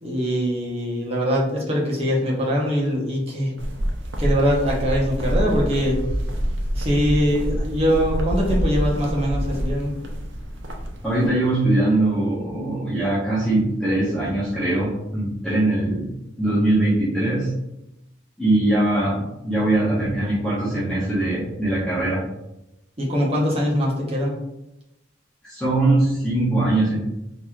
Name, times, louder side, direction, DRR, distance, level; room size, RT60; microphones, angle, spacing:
voice 1, 0.0-3.5 4.2-6.0 6.7-9.9 23.0-24.3, equal, 30° right, -4 dB, 0.9 m, -22 dB
sound 1, 3.6-11.3, equal, 75° right, 0.6 m, -26 dB
voice 2, 11.0-16.1 16.4-17.5 18.4-22.2 25.4-27.0, right 2 dB, 5° left, -11 dB, 1.0 m, -21 dB
4.0 x 2.9 x 2.4 m, 0.89 s
head